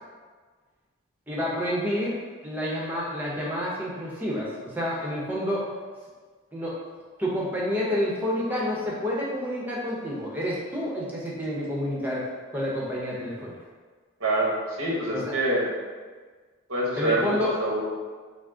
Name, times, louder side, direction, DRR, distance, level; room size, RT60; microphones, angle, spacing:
voice 1, 1.3-2.2 2.4-5.7 6.5-6.8 7.2-12.2 12.5-13.6 15.1-15.2 17.0-17.5, equal, 10° right, -5 dB, 0.8 m, -29 dB
voice 2, 14.2-15.7 16.7-17.8, right 1 dB, 85° right, -3 dB, 1.1 m, -26 dB
6.0 x 2.0 x 3.7 m, 1.5 s
head